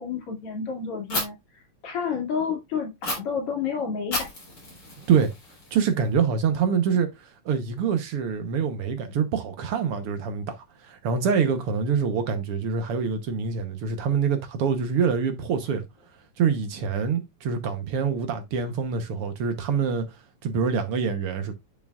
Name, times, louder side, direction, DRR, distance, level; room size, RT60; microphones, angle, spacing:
voice 1, 0.0-4.3, left 6 dB, 50° left, 3.4 m, -30 dB
Fire, 1.1-1.2 3.0-3.1 4.1-6.1, left 1 dB, 35° left, 4.6 m, -32 dB
voice 2, 5.7-15.9 16.4-21.5, right 6 dB, 60° right, 1.6 m, -25 dB
8.6 x 7.0 x 2.4 m
omnidirectional pair, 3.4 m